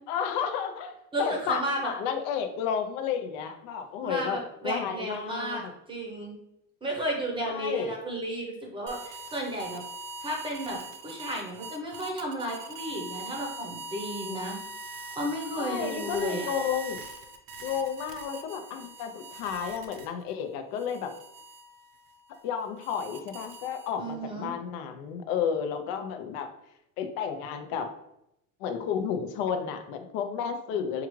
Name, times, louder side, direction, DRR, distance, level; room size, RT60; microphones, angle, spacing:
voice 1, 0.1-4.4 4.6-5.7 7.5-7.9 15.5-17.0 17.6-21.1 22.4-26.5 27.0-27.9 28.6-31.1, left 7 dB, 75° left, 7 dB, 0.6 m, -32 dB
voice 2, 1.1-1.9 4.0-5.6 5.9-6.4 6.8-9.8 10.2-10.8 11.0-14.6 14.9-16.5 24.0-24.5, right 1 dB, 15° right, 0 dB, 0.6 m, -33 dB
sound 1, 8.9-20.3 20.8-24.1, right 2 dB, 60° right, 0.6 m, -42 dB
4.6 x 2.4 x 3.1 m, 0.81 s
cardioid pair, 155°, 37 cm